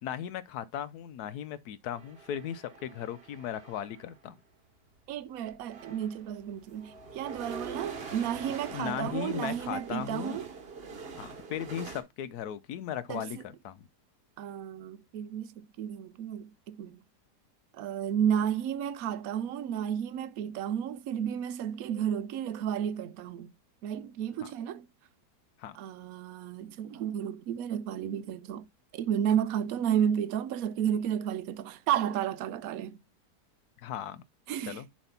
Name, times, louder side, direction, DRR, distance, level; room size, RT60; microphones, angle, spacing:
voice 1, 0.0-4.4 8.7-10.4 11.2-13.8 25.6-25.8 33.8-34.2 34.7-34.9, left 10 dB, 70° left, 1.1 m, -37 dB
sound 1, 1.9-4.2 5.1-5.2 5.5-12.0, right 4 dB, 40° right, 1.1 m, -44 dB
voice 2, 5.1-10.5 13.1-13.4 14.4-17.0 17.7-23.5 23.8-24.9 25.7-28.7 28.9-33.0 34.5-34.8, right 9 dB, 65° right, 1.0 m, -32 dB
7.2 x 3.2 x 5.6 m
omnidirectional pair, 1.8 m